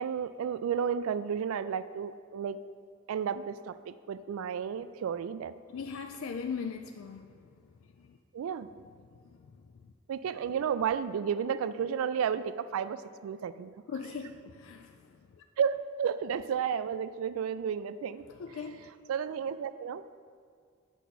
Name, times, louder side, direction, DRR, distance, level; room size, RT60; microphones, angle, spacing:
voice 1, 0.0-2.6 3.1-5.5 8.3-8.7 10.1-13.7 15.6-18.2 19.1-20.0, right 7 dB, 85° right, 14 dB, 0.3 m, -32 dB
voice 2, 5.7-7.5 7.8-8.2 9.1-9.6 13.9-15.4 18.3-18.9, left 5 dB, 75° left, 5 dB, 0.3 m, -40 dB
8.2 x 5.6 x 4.1 m, 2.1 s
head